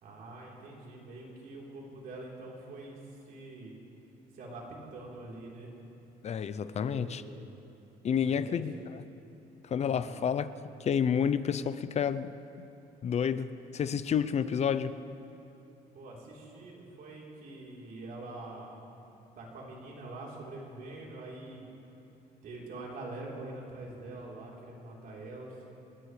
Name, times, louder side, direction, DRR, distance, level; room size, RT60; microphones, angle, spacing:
voice 1, 0.0-3.7 4.3-5.7 6.8-7.5 8.2-8.6 9.8-10.3 15.9-18.7 19.4-21.6 22.4-25.6, right 2 dB, 60° right, -3 dB, 3.8 m, -45 dB
voice 2, 6.2-7.2 8.0-9.0 9.6-10.5 10.8-12.3 13.0-15.0, left 7 dB, 40° left, 14 dB, 0.6 m, -30 dB
27.5 x 13.0 x 3.3 m, 2.8 s
cardioid pair, 110°, 17 cm